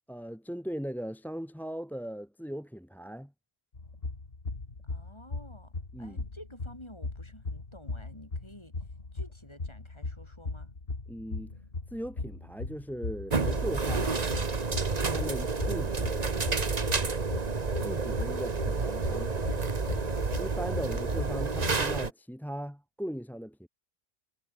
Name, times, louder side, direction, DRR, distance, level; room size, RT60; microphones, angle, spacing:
voice 1, 0.1-3.3 5.9-6.2 11.1-11.5 11.9-14.1 15.1-16.4 17.8-19.5 20.4-23.7, equal, ahead, 1.5 m, -38 dB
Hearbeat sound (with gurgling), 3.7-22.1, left 3 dB, 60° left, 2.9 m, -39 dB
voice 2, 4.9-8.7 9.1-10.7, left 1 dB, 25° left, 7.7 m, -51 dB
sound 1, 13.3-22.1, right 4 dB, 40° right, 1.4 m, -30 dB
omnidirectional pair, 1.1 m